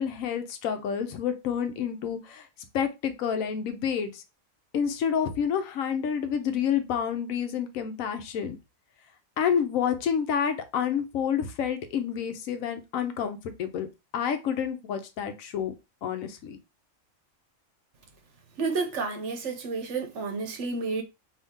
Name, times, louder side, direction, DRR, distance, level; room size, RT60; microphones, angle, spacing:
voice 1, 0.0-2.5 2.7-4.2 4.7-8.6 9.4-13.9 14.1-15.7 16.0-16.6, left 8 dB, 85° left, 1.0 m, -29 dB
voice 2, 18.6-21.0, right 4 dB, 65° right, 1.0 m, -30 dB
2.7 x 2.7 x 3.5 m
omnidirectional pair, 1.4 m